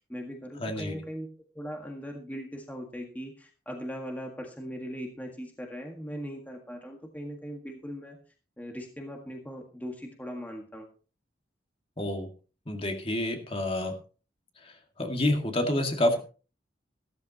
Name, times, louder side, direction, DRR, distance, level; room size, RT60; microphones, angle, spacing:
voice 1, 0.1-1.3 1.5-8.2 8.6-10.9, equal, 10° left, 2 dB, 1.7 m, -39 dB
voice 2, 0.6-0.9 12.0-12.3 12.7-14.0 15.0-16.2, left 1 dB, 30° left, 4 dB, 2.1 m, -28 dB
14.5 x 14.0 x 3.0 m, 0.36 s
head